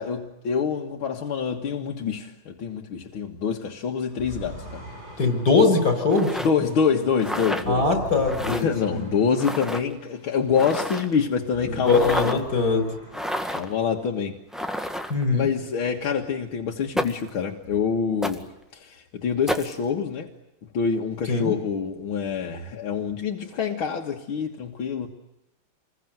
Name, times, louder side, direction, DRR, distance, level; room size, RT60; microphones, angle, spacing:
voice 1, 0.0-4.8 6.4-7.8 8.5-12.4 13.5-14.4 15.3-18.5 18.7-20.3 20.7-25.1, left 6 dB, 80° left, 1 dB, 2.6 m, -26 dB
sound 1, 4.1-11.0 11.4-14.0, equal, 50° right, 8.4 m, -42 dB
voice 2, 5.2-6.4 7.7-9.1 11.7-12.9 15.1-15.5 21.3-21.5, left 4 dB, 50° left, 7 dB, 6.3 m, -21 dB
sound 2, 6.1-6.5 7.2-7.7 8.3-8.6 9.4-9.8 10.5-11.2 11.8-12.4 13.1-13.7 14.5-15.2 17.0-17.3 18.2-18.4 19.5-19.7, equal, ahead, 1.7 m, -30 dB
28.5 x 22.0 x 9.4 m, 0.89 s
omnidirectional pair, 2.2 m